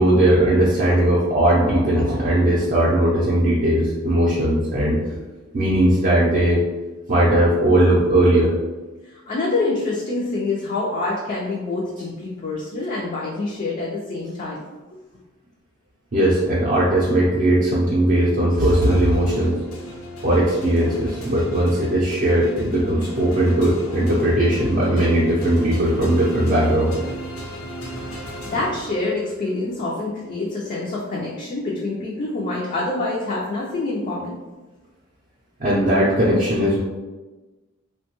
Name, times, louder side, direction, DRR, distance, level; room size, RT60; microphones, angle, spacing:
voice 1, 0.0-5.0 5.5-6.6 7.1-8.5 16.1-19.6 20.2-26.9 35.6-36.8, right 1 dB, 40° right, -7 dB, 0.5 m, -18 dB
voice 2, 9.0-14.6 28.3-34.3, left 2 dB, 35° left, -4 dB, 0.4 m, -26 dB
sound 1, 18.8-29.4, equal, 75° left, 0.7 m, -35 dB
3.0 x 2.2 x 2.9 m, 1.2 s
head